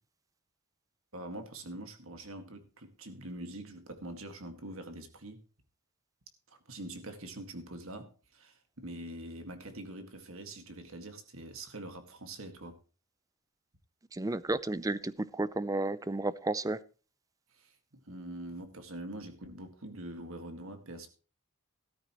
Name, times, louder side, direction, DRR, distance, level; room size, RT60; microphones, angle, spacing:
voice 1, 1.1-5.4 6.5-12.8 17.5-21.1, right 1 dB, 65° right, 2.0 m, -44 dB
voice 2, 14.1-16.8, right 2 dB, 15° right, 0.5 m, -32 dB
13.5 x 13.5 x 3.1 m
head